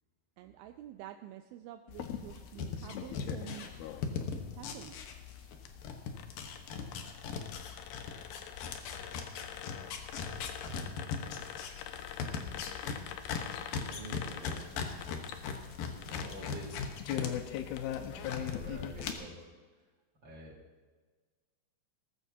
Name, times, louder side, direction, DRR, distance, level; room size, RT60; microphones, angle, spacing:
voice 1, 0.4-4.0 4.5-5.1, right 12 dB, 85° right, 7 dB, 2.3 m, -49 dB
sound 1, 1.9-19.1, left 9 dB, 85° left, 2.7 m, -43 dB
sound 2, 2.0-5.6 5.8-17.3 17.6-18.5 19.0-19.1, left 6 dB, 70° left, 2.7 m, -38 dB
sound 3, 3.0-7.7 8.0-11.5, right 1 dB, 50° right, 4.9 m, -55 dB
voice 2, 8.8-9.2 13.5-14.7 16.1-17.3 17.6-17.8 18.1-19.5 20.2-20.6, right 1 dB, 30° right, -4 dB, 4.2 m, -49 dB
19.0 x 14.5 x 2.8 m, 1.4 s
omnidirectional pair, 4.3 m